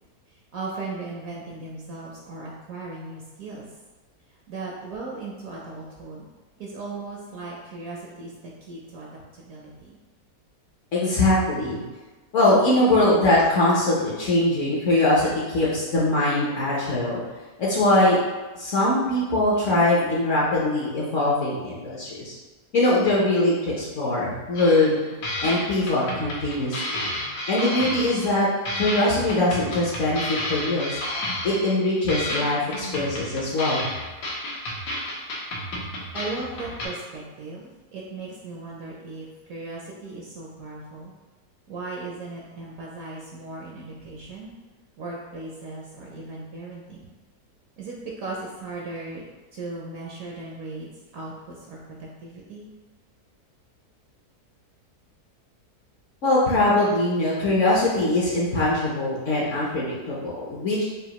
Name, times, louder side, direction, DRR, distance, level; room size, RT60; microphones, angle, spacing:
voice 1, 0.3-3.7 4.5-6.3 6.6-8.3 8.6-10.0 36.1-41.1 41.7-44.5 45.0-47.1 47.8-49.2 49.5-52.7, right 3 dB, 70° right, -3 dB, 0.9 m, -37 dB
voice 2, 10.9-11.8 12.3-17.2 17.6-18.2 18.5-22.3 22.7-27.1 27.5-28.5 28.8-31.0 31.4-33.9 56.2-60.8, left 2 dB, 60° left, -5 dB, 0.9 m, -22 dB
sound 1, 24.5-25.0 25.2-28.4 28.6-31.8 32.1-36.9, left 1 dB, 75° left, 1.4 m, -31 dB
5.0 x 2.5 x 2.8 m, 1.2 s
omnidirectional pair, 1.7 m